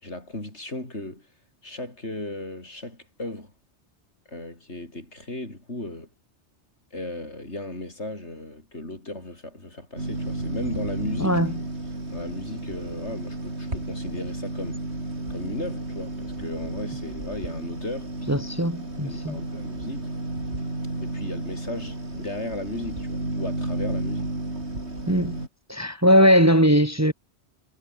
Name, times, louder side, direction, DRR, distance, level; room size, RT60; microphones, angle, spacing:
voice 1, 0.0-1.3 1.6-3.5 4.3-6.1 6.9-11.4 12.1-14.8 15.3-18.2 19.0-20.1 21.0-24.3, left 2 dB, 75° left, 6.2 m, -36 dB
sound 1, 10.0-25.5, right 2 dB, 70° right, 6.2 m, -32 dB
voice 2, 18.3-19.4 25.1-25.3 25.7-27.1, equal, 15° right, 1.7 m, -19 dB
omnidirectional pair, 1.2 m